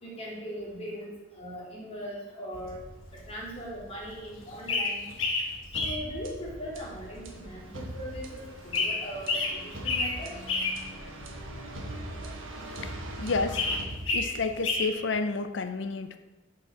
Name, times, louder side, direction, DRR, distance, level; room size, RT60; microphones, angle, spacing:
voice 1, 0.0-2.8 3.1-5.1 5.8-10.4, equal, 30° left, -4 dB, 2.2 m, -40 dB
sound 1, 2.5-14.9, left 3 dB, 80° left, 1.3 m, -33 dB
sound 2, 5.7-14.7, right 1 dB, 80° right, 1.3 m, -41 dB
voice 2, 12.8-13.6 14.1-16.2, left 4 dB, 65° left, 10 dB, 0.6 m, -31 dB
6.6 x 5.0 x 5.7 m, 1.1 s
head